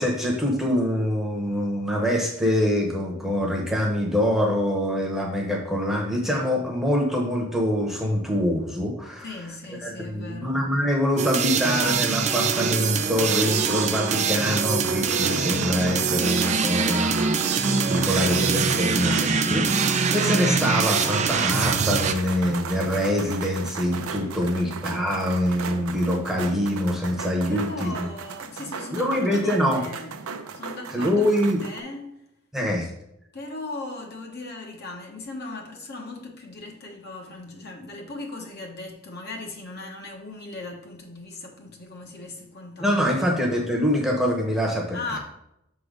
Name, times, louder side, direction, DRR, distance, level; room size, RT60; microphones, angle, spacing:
voice 1, 0.0-9.2 9.8-28.1 28.9-29.8 30.9-31.6 32.5-32.9 42.8-45.0, equal, ahead, 0.9 m, -24 dB
voice 2, 9.2-10.6 24.3-24.8 27.5-30.1 30.5-32.2 33.3-43.3 44.9-45.2, left 2 dB, 50° left, 1.0 m, -38 dB
sound 1, 11.2-22.1, right 5 dB, 35° right, 0.4 m, -24 dB
sound 2, 12.3-31.8, right 5 dB, 90° right, 0.6 m, -36 dB
6.0 x 3.9 x 4.8 m
head